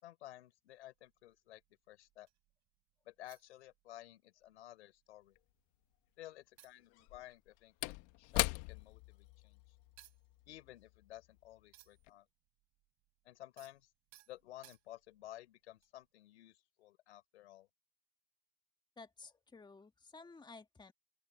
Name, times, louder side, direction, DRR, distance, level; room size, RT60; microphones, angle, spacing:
voice 1, 0.0-1.6 1.9-2.3 3.0-5.4 6.2-9.8 10.5-12.3 13.2-13.9 14.3-17.7, left 14 dB, 90° left, 4.6 m, -54 dB
sound 1, 0.7-2.5 3.2-4.1 4.4-4.6 4.9-5.8 6.2-6.3 6.6-12.2 12.5-15.2 15.8-16.0, right 15 dB, 55° right, 6.0 m, -66 dB
Slam / Wood, 5.4-5.5 6.9-11.6 11.9-12.1, left 24 dB, 65° left, 1.1 m, -41 dB
voice 2, 19.0-20.9, left 4 dB, 15° left, 1.6 m, -54 dB
open air
supercardioid pair, 95°, 33 cm